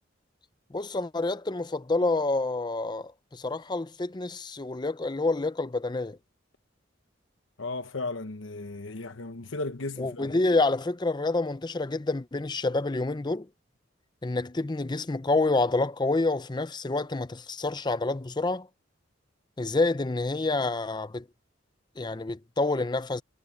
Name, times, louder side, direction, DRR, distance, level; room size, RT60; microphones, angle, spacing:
voice 1, 0.7-6.2 10.0-13.5 14.2-18.7 19.6-21.2 22.0-23.2, left 2 dB, 25° left, 0.6 m, -28 dB
voice 2, 7.6-10.3, left 2 dB, 90° left, 1.1 m, -35 dB
head